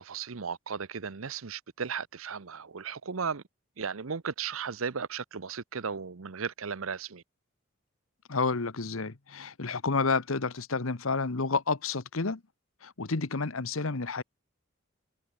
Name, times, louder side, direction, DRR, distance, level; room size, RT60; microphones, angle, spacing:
voice 1, 0.0-3.4 3.8-7.2, right 6 dB, 75° right, 0.8 m, -35 dB
voice 2, 8.3-12.4 12.8-14.2, left 4 dB, 75° left, 1.2 m, -30 dB
head